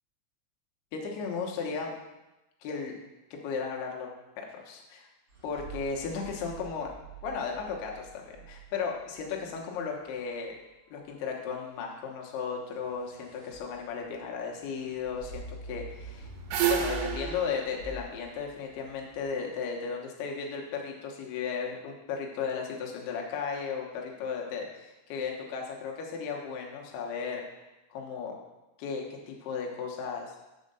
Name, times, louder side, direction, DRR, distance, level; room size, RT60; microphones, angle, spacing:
voice 1, 0.9-1.9 2.6-3.0 3.3-4.1 4.4-5.1 5.4-6.9 7.2-10.5 10.9-16.3 16.7-27.4 27.9-28.4 28.8-30.4, left 5 dB, 75° left, 0 dB, 2.9 m, -35 dB
sound 1, 5.3-9.4 12.7-18.0, right 2 dB, 35° right, 3.1 m, -45 dB
sound 2, 16.0-19.2, right 9 dB, 80° right, 2.7 m, -31 dB
6.3 x 4.9 x 6.7 m, 1.0 s
omnidirectional pair, 4.9 m